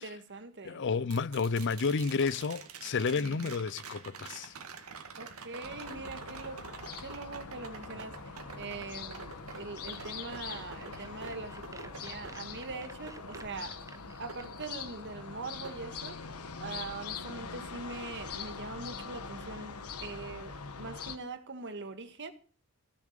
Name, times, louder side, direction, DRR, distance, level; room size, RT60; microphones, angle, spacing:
voice 1, 0.0-0.8 3.1-3.5 5.2-6.6 7.0-13.8 14.2-16.2 16.6-22.3, right 3 dB, 55° right, 1.7 m, -42 dB
voice 2, 0.6-4.5, left 4 dB, 55° left, 0.5 m, -31 dB
sound 1, 1.1-15.2 15.6-16.7 18.9-19.0, right 5 dB, 75° right, 2.1 m, -48 dB
sound 2, 5.6-21.2, left 5 dB, 90° left, 1.4 m, -43 dB
sound 3, 9.5-14.7, right 3 dB, 15° right, 0.7 m, -53 dB
16.5 x 7.2 x 6.7 m
head